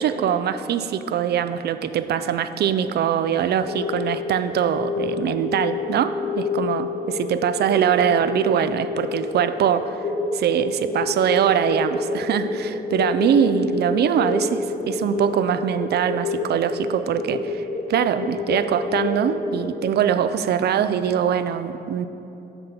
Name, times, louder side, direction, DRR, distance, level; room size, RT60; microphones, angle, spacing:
voice 1, 0.0-10.0 10.3-17.6 17.9-22.1, right 9 dB, 65° right, 11 dB, 0.4 m, -22 dB
sound 1, 3.6-19.9, left 4 dB, 35° left, 0.8 m, -28 dB
8.0 x 3.8 x 6.7 m, 2.9 s
cardioid pair, 85°, 18 cm